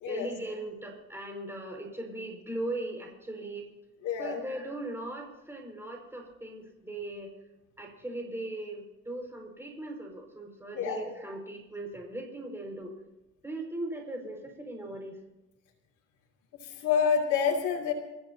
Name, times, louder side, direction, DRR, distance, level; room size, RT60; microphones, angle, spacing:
voice 1, 0.0-3.7 4.2-7.3 7.8-12.9 13.4-15.2, right 1 dB, 10° right, 1 dB, 5.2 m, -38 dB
voice 2, 4.0-4.4 10.7-11.0 16.6-17.9, left 7 dB, 80° left, -4 dB, 2.8 m, -28 dB
27.5 x 15.0 x 2.8 m, 1.0 s
cardioid pair, 90°, 30 cm